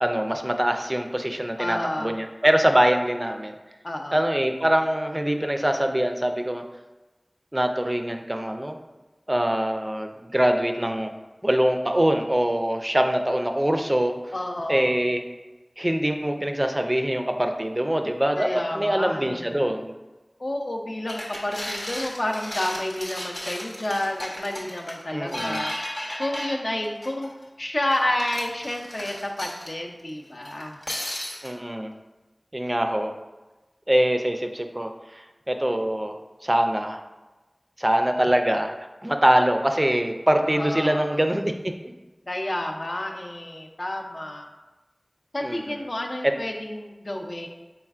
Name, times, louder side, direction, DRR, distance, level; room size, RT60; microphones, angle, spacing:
voice 1, 0.0-3.5 4.1-6.6 7.5-8.8 9.3-11.1 11.4-14.2 14.7-15.2 15.8-18.5 18.7-19.9 25.1-25.6 31.4-31.9 32.5-33.1 33.9-36.2 36.4-37.0 37.8-38.7 39.0-41.7 45.4-45.8 46.2-46.3, right 1 dB, 30° right, 5 dB, 0.3 m, -23 dB
voice 2, 1.6-2.1 3.8-4.2 14.3-14.9 18.4-19.6 20.4-25.7 26.2-27.3 27.6-30.8 40.5-41.2 42.3-44.5 45.3-47.5, left 1 dB, 65° left, 2 dB, 0.5 m, -30 dB
sound 1, 21.1-27.4 27.9-29.7 30.4-31.5, left 1 dB, 85° left, 0.9 m, -34 dB
4.3 x 3.9 x 2.4 m, 1.1 s
wide cardioid pair, 40°, 0 cm